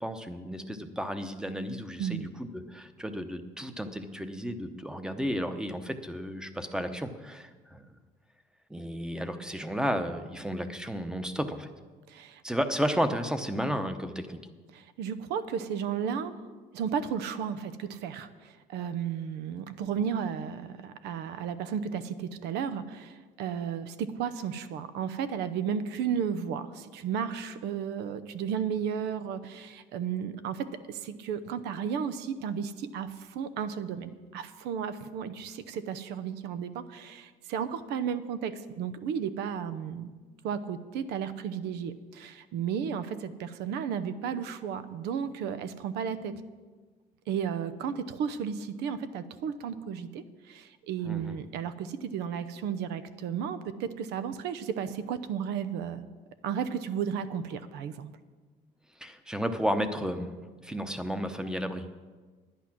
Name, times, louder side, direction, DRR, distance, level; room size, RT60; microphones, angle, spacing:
voice 1, 0.0-7.9 8.7-11.7 12.4-14.4 51.0-51.3 59.0-60.3 60.6-61.9, equal, 5° right, 8 dB, 0.8 m, -33 dB
voice 2, 12.1-12.4 14.7-16.4 16.7-40.1 40.4-46.4 47.3-56.1 56.4-58.1, right 7 dB, 85° right, 13 dB, 0.8 m, -33 dB
11.0 x 9.5 x 6.1 m, 1.4 s
cardioid pair, 110°, 17 cm